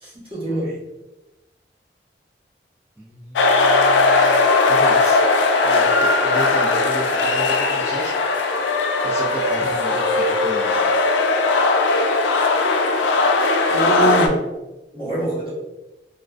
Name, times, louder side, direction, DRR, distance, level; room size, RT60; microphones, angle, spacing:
voice 1, 0.0-0.7 13.7-14.4 14.9-15.5, right 2 dB, 30° right, -8 dB, 0.9 m, -23 dB
voice 2, 3.0-5.2 5.6-8.1 9.0-10.9, right 1 dB, 15° right, -8 dB, 0.3 m, -33 dB
sound 1, 3.4-14.3, left 3 dB, 90° left, 0.3 m, -18 dB
2.5 x 2.1 x 2.3 m, 1.0 s
head